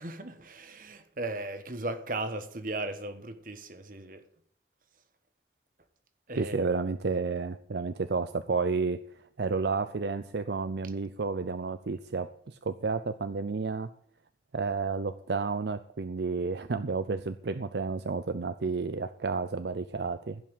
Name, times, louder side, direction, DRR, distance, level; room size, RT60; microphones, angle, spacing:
voice 1, 0.0-4.2 6.3-6.7, right 2 dB, 45° right, 1.3 m, -37 dB
voice 2, 6.4-9.0 9.4-13.9 14.5-20.4, right 4 dB, 70° right, 0.5 m, -31 dB
16.0 x 5.9 x 8.9 m
head